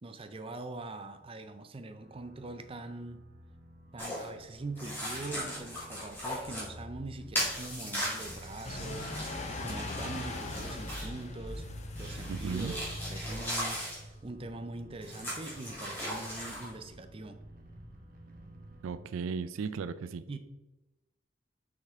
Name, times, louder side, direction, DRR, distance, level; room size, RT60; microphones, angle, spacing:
voice 1, 0.0-3.2 3.9-11.7 12.0-17.4 20.3-20.4, right 2 dB, 25° right, 8 dB, 0.5 m, -43 dB
sound 1, 2.0-19.0, equal, 45° right, 1.3 m, -52 dB
sound 2, 4.0-4.3 4.8-6.7 7.3-11.2 12.0-14.0 15.0-16.7, equal, 10° left, 2.3 m, -38 dB
sound 3, 8.6-13.7, left 2 dB, 35° left, 0.8 m, -40 dB
voice 2, 12.3-12.7 18.8-20.2, right 5 dB, 80° right, 14 dB, 0.3 m, -35 dB
6.6 x 5.6 x 3.6 m, 1.0 s
head